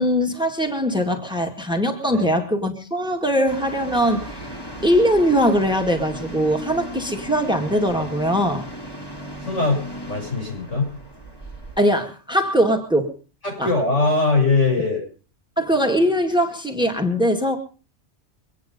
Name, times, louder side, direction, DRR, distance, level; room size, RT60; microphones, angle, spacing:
voice 1, 0.0-8.6 11.8-13.1 13.6-13.7 15.6-17.6, equal, 5° right, 4 dB, 1.9 m, -21 dB
sound 1, 3.4-11.8, equal, 20° left, 2.1 m, -36 dB
voice 2, 9.4-10.9 13.4-15.0, left 3 dB, 85° left, -1 dB, 7.5 m, -21 dB
24.0 x 9.6 x 5.2 m, 0.37 s
omnidirectional pair, 1.2 m